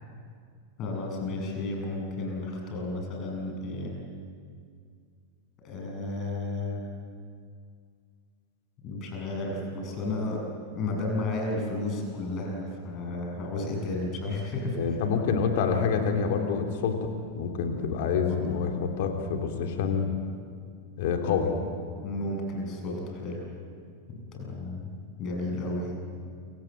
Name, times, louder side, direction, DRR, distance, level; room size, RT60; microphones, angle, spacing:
voice 1, 0.8-3.9 5.6-6.8 8.8-10.4 10.7-15.0 18.3-18.4 22.0-23.5 24.1-24.9 25.2-26.0, left 2 dB, 35° left, 1 dB, 7.5 m, -32 dB
voice 2, 14.8-20.1 21.0-21.5, left 6 dB, 50° left, 3 dB, 3.5 m, -27 dB
28.5 x 25.5 x 7.8 m, 2.1 s
figure-of-eight pair, 90°, 0 cm